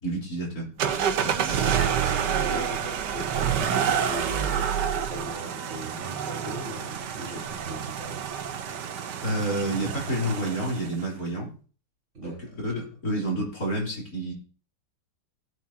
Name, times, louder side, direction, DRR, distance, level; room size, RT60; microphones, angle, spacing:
voice 1, 0.0-0.7 1.5-1.8 9.2-11.5 12.2-12.3 12.6-14.3, right 1 dB, 40° left, -3 dB, 4.0 m, -29 dB
sound 1, 0.8-11.0, right 8 dB, 60° right, 1.3 m, -28 dB
voice 2, 1.2-8.2 12.1-12.4 12.7-12.8, equal, 30° right, -2 dB, 4.1 m, -39 dB
18.5 x 8.5 x 2.9 m, 0.40 s
omnidirectional pair, 2.4 m